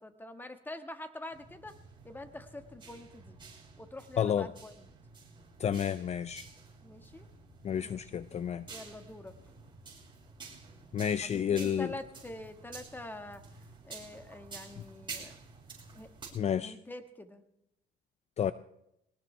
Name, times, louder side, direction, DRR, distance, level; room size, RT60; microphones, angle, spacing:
voice 1, 0.0-1.7 2.0-3.4 3.8-4.9 6.8-7.3 7.8-8.4 8.7-9.3 11.2-13.4 13.8-15.3 15.9-16.1 16.6-17.4, left 1 dB, 10° left, 7 dB, 1.6 m, -45 dB
sound 1, 1.3-16.3, right 4 dB, 30° right, 5.7 m, -50 dB
voice 2, 4.2-4.5 5.6-6.5 7.6-8.6 10.9-11.9 16.3-16.8 18.4-18.5, left 9 dB, 40° left, 14 dB, 0.5 m, -30 dB
21.0 x 19.0 x 3.4 m, 0.79 s
cardioid pair, 110°, 17 cm